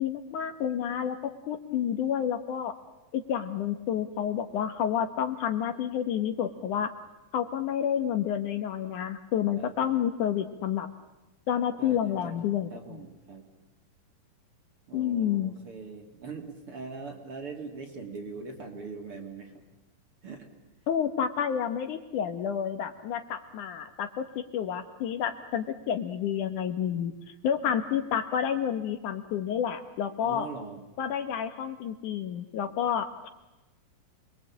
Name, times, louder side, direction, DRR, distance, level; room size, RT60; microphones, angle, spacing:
voice 1, 0.0-2.8 3.1-6.9 7.3-10.9 11.5-13.0 14.9-15.6 20.9-27.1 27.4-30.5 31.0-33.3, left 9 dB, 65° left, 8 dB, 2.4 m, -29 dB
voice 2, 9.6-10.0 11.8-12.4 12.7-13.5 14.9-19.6 20.2-20.5 30.2-30.8, right 4 dB, 40° right, 3 dB, 3.1 m, -41 dB
27.5 x 21.5 x 8.6 m, 1.0 s
omnidirectional pair, 4.1 m